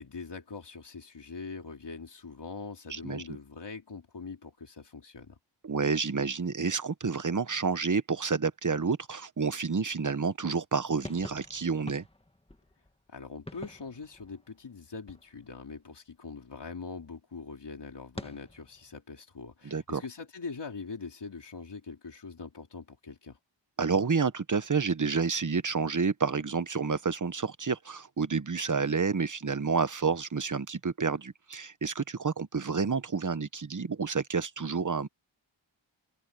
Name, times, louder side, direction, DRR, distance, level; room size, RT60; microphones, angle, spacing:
voice 1, 0.0-5.4 13.1-23.4, left 4 dB, 60° left, 3.0 m, -43 dB
voice 2, 2.9-3.2 5.6-12.0 19.6-20.0 23.8-35.1, right 5 dB, 40° right, 1.1 m, -29 dB
sound 1, 11.0-15.8 18.1-19.0, left 1 dB, 10° left, 1.7 m, -47 dB
wide cardioid pair, 85°, 47 cm